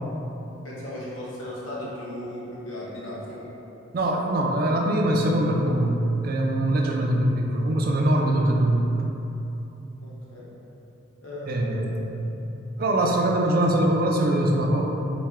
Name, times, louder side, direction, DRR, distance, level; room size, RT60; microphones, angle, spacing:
voice 1, 0.6-3.5 10.0-10.5 11.2-11.9, left 1 dB, 80° left, -7 dB, 1.0 m, -36 dB
voice 2, 3.9-8.9 11.5-12.3 12.8-14.8, right 1 dB, 50° right, 0 dB, 0.4 m, -22 dB
4.2 x 2.2 x 3.5 m, 3.0 s
head